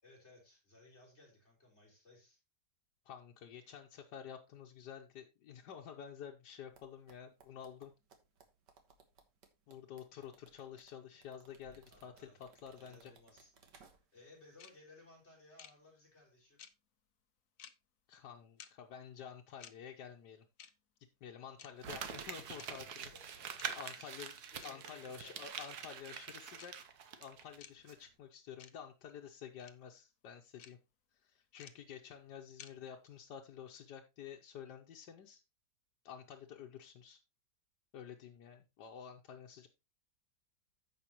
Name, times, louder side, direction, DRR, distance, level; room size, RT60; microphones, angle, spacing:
voice 1, 0.0-2.4 11.6-13.5 13.8-16.6 22.8-25.4, left 2 dB, 40° left, -2 dB, 4.3 m, -62 dB
voice 2, 3.0-7.9 9.7-13.1 18.1-20.4 21.0-23.1 23.4-24.3 24.6-26.8 27.2-30.8 31.1-35.4 36.0-37.2 37.9-39.7, left 8 dB, 85° left, 1 dB, 1.5 m, -50 dB
sound 1, 6.7-14.3 14.6-14.8, right 5 dB, 90° right, 2.0 m, -65 dB
sound 2, 14.6-14.7 15.6-15.7 16.6-16.7 17.6-17.7 18.6-18.7 19.6-19.7 20.6-20.7 21.6-21.7 22.6-22.7 23.6-23.7 24.6-24.7 25.6-25.7 26.6-26.7 27.6-27.7 28.6-28.7 29.6-29.7 30.6-30.7 31.6-31.7 32.6-32.7, left 9 dB, 60° left, 1.0 m, -53 dB
Crumpling crinkling, 21.8-27.6 27.9-28.0, right 7 dB, 70° right, 1.5 m, -45 dB
15.5 x 5.2 x 3.0 m, 0.25 s
omnidirectional pair, 1.8 m